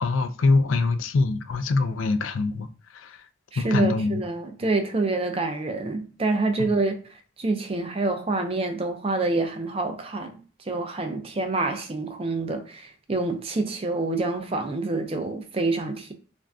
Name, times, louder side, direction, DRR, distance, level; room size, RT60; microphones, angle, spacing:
voice 1, 0.0-2.7 2.9-3.2 3.6-4.2 6.6-6.7, left 3 dB, 90° left, 0.4 m, -24 dB
voice 2, 3.5-7.0 7.4-10.4 10.7-16.1, right 3 dB, 30° right, 0.5 m, -27 dB
2.5 x 2.2 x 3.4 m
head